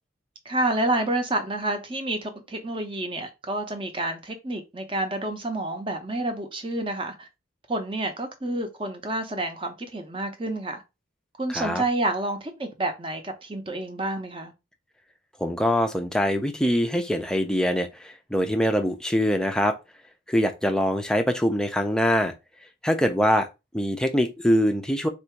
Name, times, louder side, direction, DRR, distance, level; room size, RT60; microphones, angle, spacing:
voice 1, 0.4-7.3 7.7-10.8 11.4-14.5, right 2 dB, 25° right, 0.7 m, -29 dB
voice 2, 11.5-11.8 15.4-19.7 20.3-22.3 22.8-23.5 23.7-25.1, equal, 5° left, 0.5 m, -23 dB
3.7 x 2.6 x 4.5 m
head